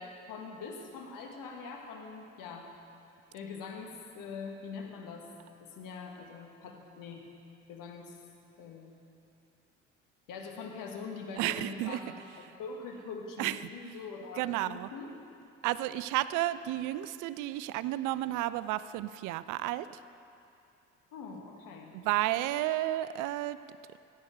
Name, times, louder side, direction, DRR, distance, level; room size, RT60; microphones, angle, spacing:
voice 1, 0.0-2.7 3.3-5.3 5.6-7.3 7.7-8.2 8.6-8.9 10.3-15.1 21.1-21.9, left 4 dB, 60° left, 2 dB, 1.8 m, -43 dB
voice 2, 11.4-12.0 13.4-13.6 14.4-14.9 15.6-19.9 21.9-23.6, right 15 dB, 60° right, 15 dB, 0.5 m, -32 dB
15.5 x 8.6 x 4.7 m, 2.7 s
hypercardioid pair, 55°, 36 cm